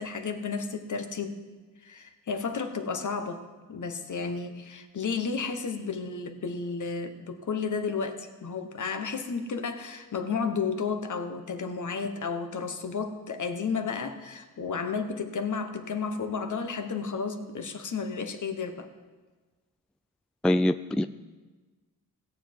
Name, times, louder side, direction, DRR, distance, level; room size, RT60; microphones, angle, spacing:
voice 1, 0.0-1.4 1.8-3.4 3.7-18.9, left 5 dB, 50° left, 7 dB, 1.2 m, -32 dB
voice 2, 20.4-21.0, left 1 dB, ahead, 11 dB, 0.3 m, -23 dB
16.5 x 7.4 x 4.6 m, 1.3 s
cardioid pair, 55°, 38 cm